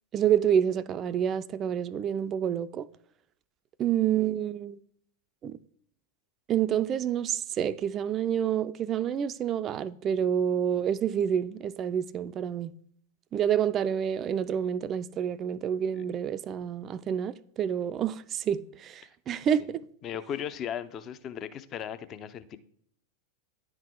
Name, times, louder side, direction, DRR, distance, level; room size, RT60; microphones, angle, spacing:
voice 1, 0.1-2.9 3.8-4.8 5.4-5.6 6.5-12.7 13.3-19.8, right 9 dB, 30° right, 0.3 m, -28 dB
voice 2, 20.0-22.6, left 9 dB, 30° left, 0.5 m, -37 dB
10.0 x 4.1 x 4.2 m
figure-of-eight pair, 90°, 0 cm